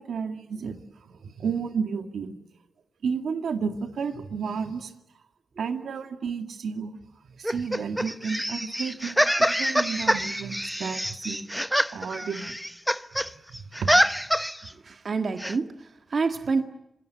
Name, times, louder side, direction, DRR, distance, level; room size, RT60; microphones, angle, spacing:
voice 1, 0.0-2.4 3.0-4.9 5.6-7.0 7.3-11.5 11.9-12.6 13.2-14.3, right 6 dB, 90° right, 7 dB, 2.1 m, -32 dB
sound 1, 7.4-13.3 13.5-14.7 15.4-15.6, equal, ahead, 0.9 m, -25 dB
voice 2, 14.7-16.6, right 4 dB, 55° right, 7 dB, 1.6 m, -28 dB
27.0 x 20.5 x 9.4 m, 0.86 s
cardioid pair, 75°, 0 cm